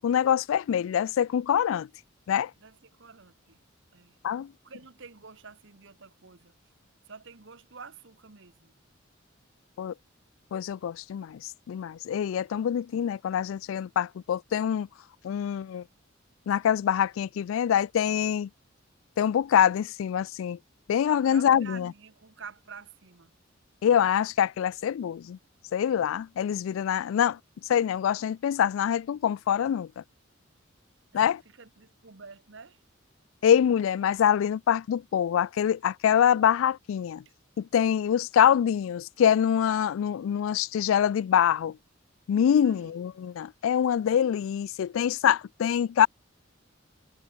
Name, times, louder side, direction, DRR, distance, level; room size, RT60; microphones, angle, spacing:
voice 1, 0.0-1.9 2.3-2.5 4.2-4.5 9.8-9.9 10.5-14.9 15.2-15.8 16.5-18.5 19.2-20.6 20.9-21.9 23.8-25.4 25.7-27.4 27.7-30.0 31.1-31.4 33.4-37.2 37.6-41.8 42.3-46.1, left 9 dB, 75° left, 0.3 m, -25 dB
voice 2, 2.6-3.6 3.9-4.2 4.6-6.5 7.0-8.8 21.2-23.3 31.1-32.8 37.2-37.3 42.6-43.0, right 5 dB, 65° right, 1.3 m, -48 dB
head